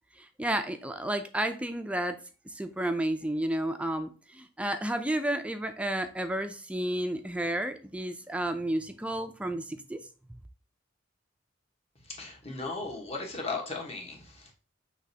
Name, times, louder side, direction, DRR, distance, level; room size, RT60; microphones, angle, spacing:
voice 1, 0.2-2.2 2.5-10.0, right 1 dB, 5° right, 8 dB, 0.3 m, -31 dB
voice 2, 12.0-14.5, left 3 dB, 35° left, 0 dB, 1.2 m, -37 dB
6.2 x 3.1 x 2.8 m, 0.37 s
head